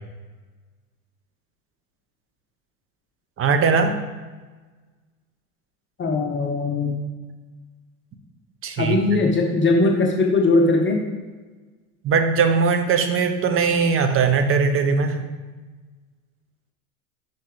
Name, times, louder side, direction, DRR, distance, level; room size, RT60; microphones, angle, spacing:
voice 1, 3.4-4.0 8.6-9.0 12.0-15.2, right 5 dB, 30° right, 7 dB, 0.9 m, -20 dB
voice 2, 6.0-7.0 8.8-11.0, left 3 dB, 25° left, 2 dB, 1.0 m, -20 dB
5.8 x 5.6 x 5.0 m, 1.3 s
hypercardioid pair, 90°, 43 cm